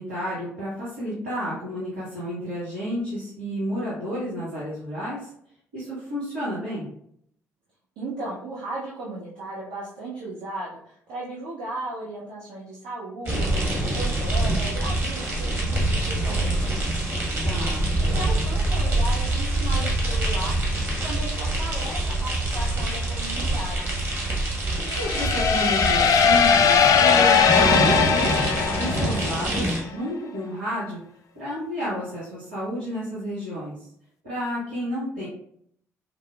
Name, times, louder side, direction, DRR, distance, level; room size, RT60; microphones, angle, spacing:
voice 1, 0.0-5.3 5.7-6.9 17.4-17.9 24.8-31.0 31.3-33.9 34.2-35.3, equal, 80° right, -11 dB, 1.1 m, -31 dB
voice 2, 8.0-13.6 13.9-17.0 17.5-20.6 21.0-24.0, right 2 dB, 65° right, -7 dB, 0.8 m, -36 dB
sound 1, 13.2-29.8, right 1 dB, 30° right, 1.4 m, -25 dB
sound 2, 24.9-29.6, left 6 dB, 45° left, 0.4 m, -20 dB
4.4 x 2.0 x 2.3 m, 0.67 s
figure-of-eight pair, 45°, 8 cm